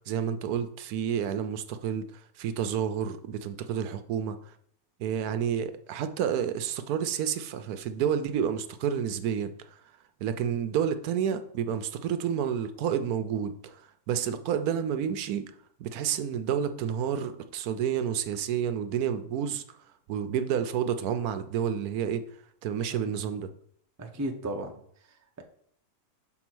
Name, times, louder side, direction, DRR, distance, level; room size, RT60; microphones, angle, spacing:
voice 1, 0.1-4.5 5.0-9.5 10.2-15.5 15.8-19.6 20.1-22.2 22.6-23.5, right 8 dB, 75° right, 1.1 m, -30 dB
voice 2, 24.0-25.4, right 1 dB, 20° right, 0.4 m, -36 dB
5.9 x 3.9 x 6.1 m
omnidirectional pair, 1.6 m